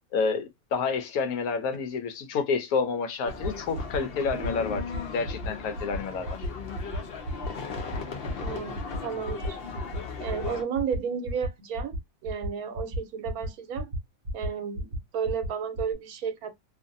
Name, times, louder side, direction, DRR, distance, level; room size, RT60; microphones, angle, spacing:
voice 1, 0.1-6.4, left 5 dB, 80° left, 1.1 m, -29 dB
sound 1, 3.3-10.6, left 5 dB, 55° left, 0.7 m, -37 dB
sound 2, 3.3-3.5 3.8-4.0 4.3-4.5 4.8-5.0 5.3-5.5 5.8-6.0 6.3-6.5 6.8-7.0 7.3-7.5 7.8-8.0 8.3-8.5 8.8-9.0 9.3-9.5 9.8-10.0 10.3-10.5 10.8-11.0 11.3-11.5 11.8-12.0 12.3-12.5 12.8-13.0 13.3-13.5 13.8-14.0 14.3-14.5 14.8-15.0 15.3-15.5 15.8-15.9, right 1 dB, 45° right, 0.9 m, -32 dB
voice 2, 8.4-9.6 10.2-12.0 12.2-13.9 14.3-16.5, right 7 dB, 75° right, 1.1 m, -33 dB
2.5 x 2.5 x 2.5 m
omnidirectional pair, 1.6 m